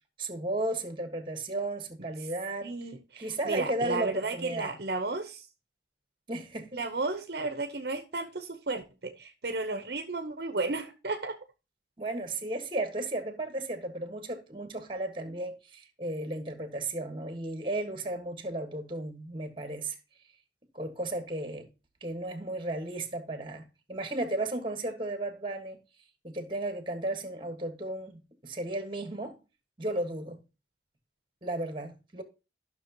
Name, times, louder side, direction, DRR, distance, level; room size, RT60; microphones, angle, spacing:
voice 1, 0.2-2.7 3.2-4.7 6.3-6.8 12.0-20.0 20.7-21.7 22.0-25.8 26.2-29.4 29.8-30.4 31.4-32.2, right 2 dB, 30° right, 1.5 m, -34 dB
voice 2, 2.6-5.5 6.7-11.4, right 3 dB, 65° right, 0.9 m, -33 dB
12.5 x 6.2 x 2.9 m
head